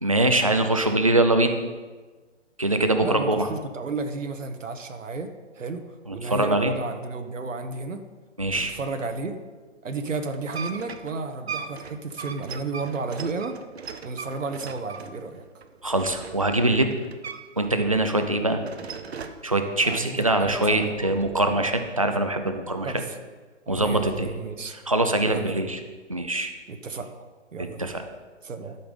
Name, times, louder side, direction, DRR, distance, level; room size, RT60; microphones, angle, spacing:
voice 1, 0.0-1.6 2.6-3.5 6.1-6.7 8.4-8.7 15.8-16.9 17.6-18.6 19.4-22.9 23.7-24.3 24.9-25.8 26.1-26.5 27.6-28.0, right 1 dB, 30° right, 6 dB, 0.4 m, -23 dB
voice 2, 3.0-5.8 6.1-8.0 8.5-9.4 9.8-13.6 14.0-15.4 19.8-20.9 22.8-23.1 23.7-24.8 25.2-25.7 26.7-27.1 27.5-27.9 28.4-28.8, right 3 dB, 90° right, 6 dB, 1.4 m, -32 dB
sound 1, 10.3-17.7 18.0-19.5 19.9-21.7, right 5 dB, 60° right, 0.8 m, -39 dB
12.5 x 5.9 x 5.1 m, 1.3 s
hypercardioid pair, 175°, 37 cm